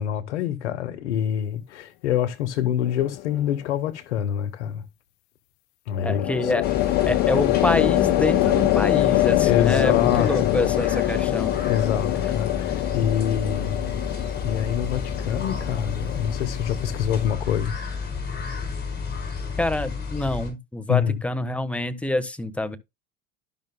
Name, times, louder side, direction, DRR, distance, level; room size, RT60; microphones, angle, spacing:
voice 1, 0.0-4.8 5.9-6.2 9.4-10.6 11.6-14.1 14.4-17.8 20.9-21.2, left 10 dB, 85° left, 1.0 m, -26 dB
sound 1, 2.8-3.4 5.9-17.3, left 17 dB, 55° left, 0.6 m, -24 dB
voice 2, 6.0-6.6 7.1-11.6 19.6-22.8, left 1 dB, 5° left, 1.2 m, -26 dB
sound 2, 6.6-20.5, left 5 dB, 30° left, 4.5 m, -31 dB
12.0 x 5.7 x 2.2 m
hypercardioid pair, 85°, 34 cm